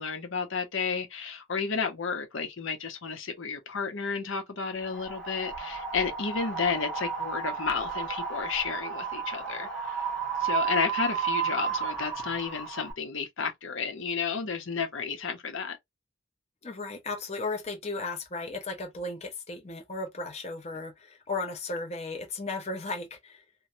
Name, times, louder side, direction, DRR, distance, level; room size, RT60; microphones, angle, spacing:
voice 1, 0.0-10.0 10.4-15.8, left 5 dB, 70° left, 0.8 m, -32 dB
Wind, 4.8-12.9, right 6 dB, 5° left, 1.3 m, -33 dB
voice 2, 16.6-23.4, left 3 dB, 30° left, 0.7 m, -35 dB
3.1 x 2.1 x 2.6 m
head